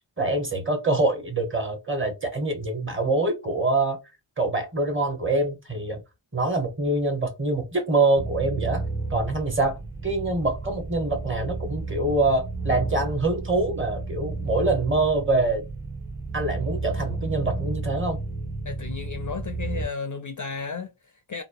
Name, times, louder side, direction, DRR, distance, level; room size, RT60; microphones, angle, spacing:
voice 1, 0.2-4.0 4.4-6.0 6.3-8.8 9.1-15.6 16.3-18.2, right 2 dB, 25° right, 0.9 m, -25 dB
sound 1, 8.1-19.9, right 3 dB, 85° right, 1.5 m, -32 dB
voice 2, 18.6-21.4, left 5 dB, 40° left, 0.4 m, -34 dB
2.8 x 2.0 x 2.5 m
wide cardioid pair, 100°, 49 cm